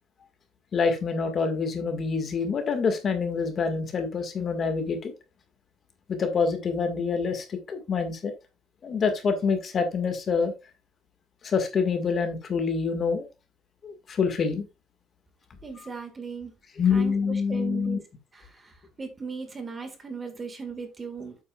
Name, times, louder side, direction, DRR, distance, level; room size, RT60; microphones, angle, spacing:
voice 1, 0.7-5.1 6.1-8.3 8.8-10.5 11.4-13.3 13.8-14.7 16.8-18.0, left 5 dB, 35° left, 7 dB, 1.7 m, -26 dB
voice 2, 15.6-16.5 16.9-18.0 18.3-21.4, right 5 dB, 20° right, 6 dB, 1.7 m, -38 dB
8.4 x 8.2 x 2.4 m, 0.25 s
cardioid pair, 140°, 0 cm